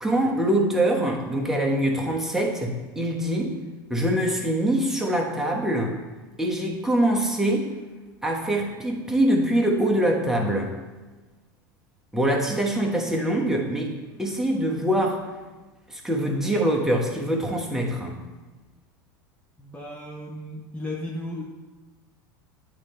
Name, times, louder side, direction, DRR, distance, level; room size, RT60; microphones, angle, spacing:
voice 1, 0.0-3.6 3.9-5.9 6.4-7.7 8.2-10.7 12.1-13.9 14.2-15.2 15.9-18.2, right 1 dB, 5° right, -1 dB, 1.1 m, -24 dB
voice 2, 19.6-21.4, left 1 dB, 10° left, -2 dB, 0.7 m, -35 dB
8.8 x 3.2 x 4.3 m, 1.2 s
hypercardioid pair, 100°, 12 cm